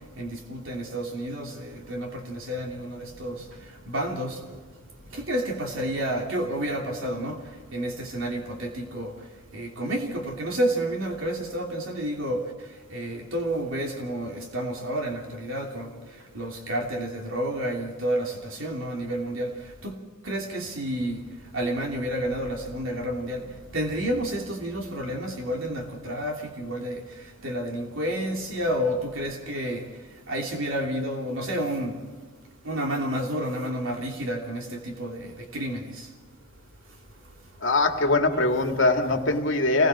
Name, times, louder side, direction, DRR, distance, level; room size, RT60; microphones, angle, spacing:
voice 1, 0.2-3.4 3.9-4.3 5.1-7.3 7.7-9.1 9.5-12.4 12.9-15.9 16.3-19.5 19.8-20.0 20.2-21.2 21.5-23.4 23.7-26.9 27.4-29.8 30.3-32.0 32.6-34.6 35.0-35.2 35.5-35.8, right 1 dB, 90° right, 3.0 m, -30 dB
voice 2, 37.6-39.9, left 2 dB, 75° left, 2.2 m, -22 dB
28.0 x 21.0 x 4.9 m
head